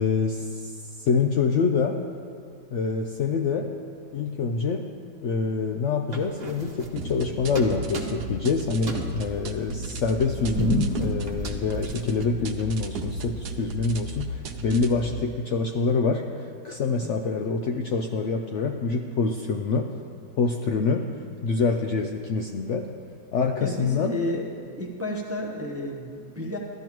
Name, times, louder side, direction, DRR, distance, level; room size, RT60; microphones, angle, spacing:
voice 1, 0.0-2.0 2.7-3.7 4.1-4.9 5.2-19.9 20.4-21.1 21.4-22.9 23.3-24.2, left 4 dB, 90° left, 4 dB, 0.6 m, -26 dB
sound 1, 6.1-7.2 7.5-8.4 8.8-12.5, right 3 dB, 30° right, 0.8 m, -32 dB
sound 2, 7.0-15.0, right 1 dB, 70° right, 1.2 m, -35 dB
voice 2, 23.6-24.5 24.8-26.6, left 1 dB, 15° right, 0 dB, 0.5 m, -31 dB
15.5 x 12.0 x 3.0 m, 2.2 s
omnidirectional pair, 1.8 m